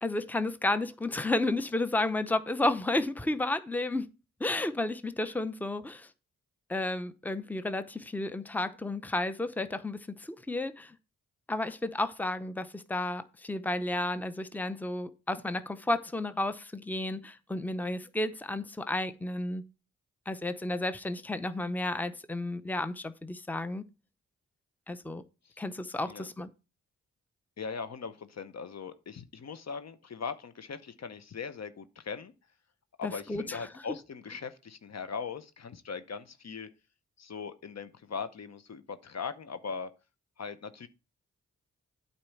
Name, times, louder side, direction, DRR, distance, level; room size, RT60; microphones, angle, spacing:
voice 1, 0.0-4.1 4.4-6.1 6.7-10.9 11.5-19.6 20.3-23.8 24.9-25.2 25.6-26.5 33.0-33.6, left 2 dB, 5° left, 0.8 m, -32 dB
voice 2, 27.6-32.3 33.0-36.7 37.2-39.9 40.4-40.9, left 5 dB, 55° left, 0.9 m, -40 dB
8.7 x 4.3 x 7.1 m
cardioid pair, 50°, 32 cm